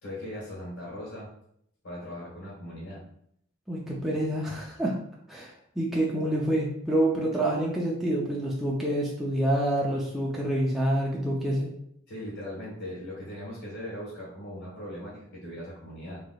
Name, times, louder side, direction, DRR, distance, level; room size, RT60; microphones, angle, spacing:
voice 1, 0.0-1.3 1.8-3.1 12.1-16.2, left 1 dB, 65° left, -7 dB, 1.4 m, -39 dB
voice 2, 3.7-4.9 5.3-11.7, right 1 dB, ahead, -5 dB, 0.5 m, -27 dB
3.7 x 3.3 x 2.3 m, 0.71 s
head